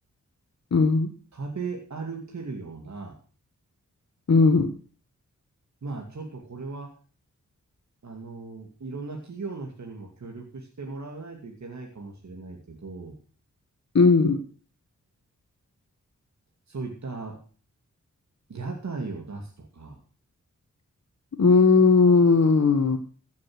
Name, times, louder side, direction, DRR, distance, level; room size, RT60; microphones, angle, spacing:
voice 1, 0.7-1.1 4.3-4.7 13.9-14.4 21.4-23.0, left 4 dB, 55° left, 6 dB, 1.5 m, -18 dB
voice 2, 1.3-3.2 5.8-6.9 8.0-13.1 16.7-17.4 18.5-20.0, right 4 dB, 60° right, 1 dB, 2.5 m, -37 dB
15.0 x 7.4 x 6.2 m, 0.40 s
cardioid pair, 60°, 31 cm